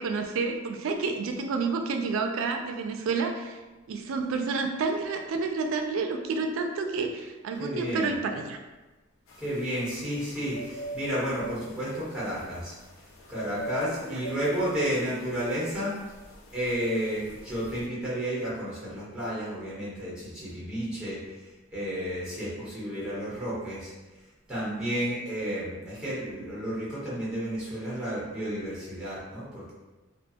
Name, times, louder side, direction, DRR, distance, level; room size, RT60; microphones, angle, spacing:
voice 1, 0.0-3.6 3.9-8.6 14.1-14.3, right 4 dB, 75° right, 5 dB, 0.3 m, -29 dB
voice 2, 7.6-8.1 9.4-12.8 13.3-15.9 16.5-23.9 24.5-29.7, equal, 5° right, -8 dB, 1.0 m, -32 dB
sound 1, 9.3-17.9, equal, 75° left, 0.4 m, -43 dB
2.4 x 2.2 x 2.7 m, 1.2 s
head